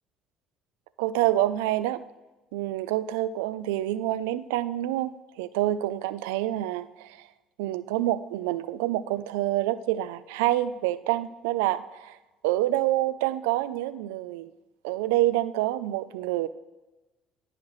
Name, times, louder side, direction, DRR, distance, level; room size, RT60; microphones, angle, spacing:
voice 1, 1.0-2.0 2.5-7.1 7.6-12.2 12.4-14.5 14.8-16.5, right 14 dB, 90° right, 15 dB, 0.3 m, -27 dB
14.5 x 5.7 x 3.1 m, 1.1 s
supercardioid pair, 80°, 0 cm